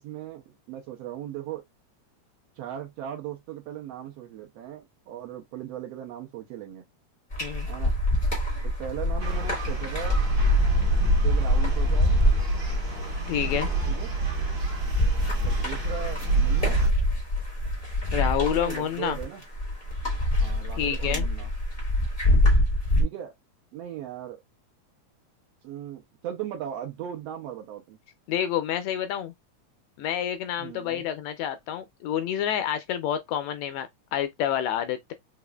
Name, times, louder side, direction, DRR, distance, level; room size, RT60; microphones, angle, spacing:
voice 1, 0.0-1.6 2.6-6.8 7.7-7.9 8.6-10.2 11.2-12.2 13.9-14.1 15.4-16.8 18.4-19.4 20.4-21.5 23.0-23.3 23.7-24.4 25.6-28.0 30.6-31.0, right 10 dB, 75° right, 1.6 m, -38 dB
sound 1, 7.3-23.0, left 1 dB, 60° left, 0.4 m, -25 dB
sound 2, 9.2-16.9, right 3 dB, 55° right, 1.1 m, -27 dB
voice 2, 13.3-13.7 18.1-19.2 20.8-21.3 28.3-29.3 30.0-35.1, left 10 dB, 80° left, 1.7 m, -28 dB
4.8 x 2.4 x 2.2 m
omnidirectional pair, 3.3 m